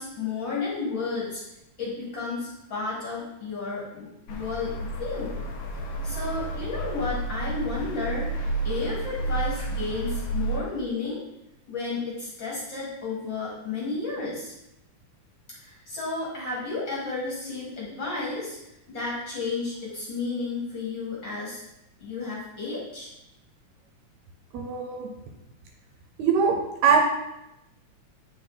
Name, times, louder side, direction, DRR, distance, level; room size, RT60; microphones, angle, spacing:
voice 1, 0.0-1.4 1.8-5.4 6.0-8.3 8.6-11.2 11.7-14.5 15.6-18.6 18.9-21.6 22.0-23.1, left 4 dB, 45° left, -5 dB, 1.8 m, -32 dB
sound 1, 4.3-10.6, right 2 dB, 90° left, 1.0 m, -31 dB
voice 2, 24.5-25.1 26.2-26.6 26.8-27.0, right 6 dB, 70° right, 2 dB, 1.9 m, -21 dB
8.6 x 4.5 x 3.9 m, 0.89 s
omnidirectional pair, 3.6 m